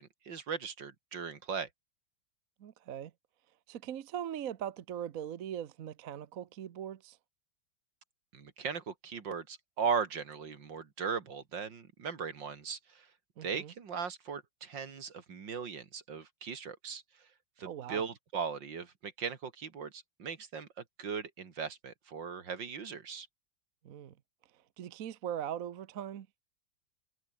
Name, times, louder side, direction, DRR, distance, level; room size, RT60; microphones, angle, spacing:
voice 1, 0.0-1.7 8.3-13.1 13.4-17.0 17.6-20.7 21.0-23.3, right 6 dB, 75° right, 2.9 m, -38 dB
voice 2, 2.6-3.1 3.7-7.2 13.4-13.7 17.6-18.0 23.8-24.1 24.8-26.3, right 10 dB, 55° right, 1.1 m, -40 dB
omnidirectional pair, 2.0 m